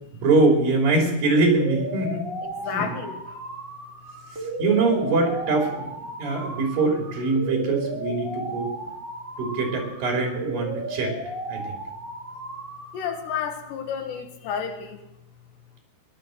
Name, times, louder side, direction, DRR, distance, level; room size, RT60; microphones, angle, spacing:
voice 1, 0.1-2.3 2.7-2.9 4.6-5.9 6.2-8.7 9.4-11.1 11.5-11.8, right 3 dB, 55° right, 1 dB, 4.7 m, -23 dB
sound 1, 1.4-13.4, right 1 dB, 20° right, 1.5 m, -35 dB
voice 2, 2.4-3.2 12.9-15.0, left 7 dB, 85° left, 5 dB, 3.8 m, -31 dB
17.5 x 12.0 x 6.4 m, 0.85 s
omnidirectional pair, 4.8 m